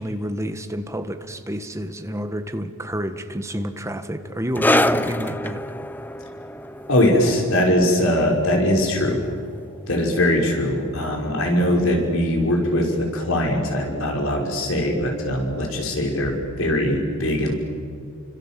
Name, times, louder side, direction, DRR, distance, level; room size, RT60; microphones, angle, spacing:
voice 1, 0.0-5.6, equal, 15° right, 7 dB, 1.6 m, -29 dB
sound 1, 4.6-11.6 11.8-12.0 12.8-12.9, left 1 dB, 10° left, 0.7 m, -27 dB
voice 2, 6.9-9.2 9.9-17.5, left 1 dB, 65° left, 1 dB, 5.8 m, -21 dB
29.5 x 26.0 x 7.7 m, 2.4 s
head